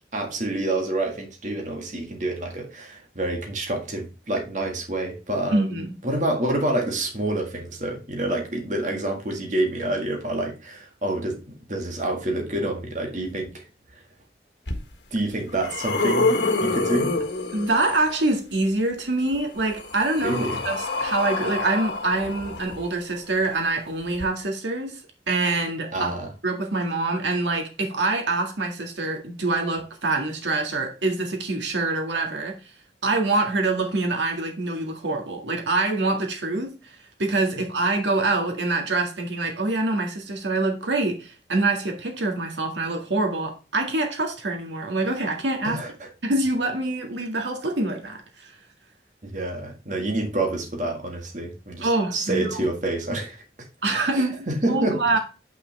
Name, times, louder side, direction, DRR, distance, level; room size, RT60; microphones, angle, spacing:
voice 1, 0.1-5.7 6.0-13.6 13.9-14.0 15.1-17.1 20.2-20.6 25.9-26.3 45.6-46.1 49.2-53.4 54.1-55.2, right 1 dB, 40° right, 1.9 m, -28 dB
voice 2, 5.5-5.9 17.5-20.4 20.7-25.0 25.3-26.1 26.4-32.6 33.0-45.8 46.2-48.5 51.8-52.6 53.8-55.2, right 2 dB, 85° right, 1.9 m, -25 dB
sound 1, 14.7-14.8 15.3-18.1 19.3-23.2 24.1-24.2, left 3 dB, 75° left, 1.5 m, -27 dB
8.3 x 5.8 x 3.4 m
head